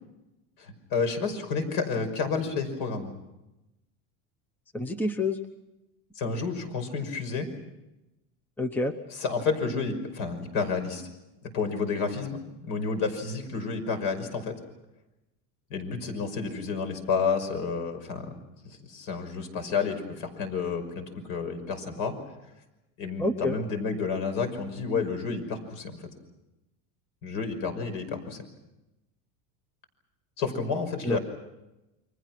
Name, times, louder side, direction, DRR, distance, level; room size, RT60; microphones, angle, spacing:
voice 1, 0.6-3.1 6.1-7.5 9.1-11.1 11.4-14.6 15.7-18.3 18.6-22.2 23.0-25.9 27.2-28.4 30.4-31.2, left 5 dB, 55° left, 7 dB, 5.8 m, -30 dB
voice 2, 4.7-5.4 8.6-8.9 23.2-23.6 31.0-31.2, left 2 dB, 5° left, 9 dB, 0.9 m, -27 dB
29.5 x 24.5 x 6.1 m, 0.96 s
cardioid pair, 150°, 39 cm